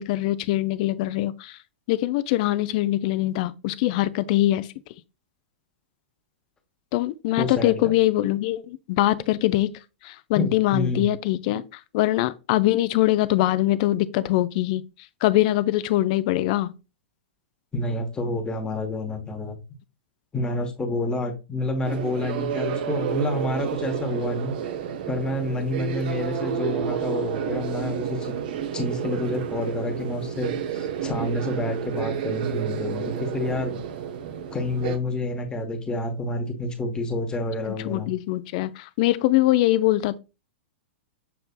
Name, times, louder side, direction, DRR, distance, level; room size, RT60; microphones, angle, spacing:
voice 1, 0.0-1.6 1.9-4.7 6.9-9.7 10.0-11.6 11.9-14.8 15.2-16.7 37.7-40.2, left 15 dB, 40° left, 0.3 m, -23 dB
voice 2, 7.4-7.9 10.3-11.1 17.7-19.6 20.3-24.6 25.1-28.3 28.7-33.8 34.5-38.1, left 1 dB, 15° left, 1.0 m, -28 dB
sound 1, 21.8-35.0, right 8 dB, 50° right, 0.5 m, -30 dB
6.8 x 3.2 x 2.2 m
figure-of-eight pair, 100°, 6 cm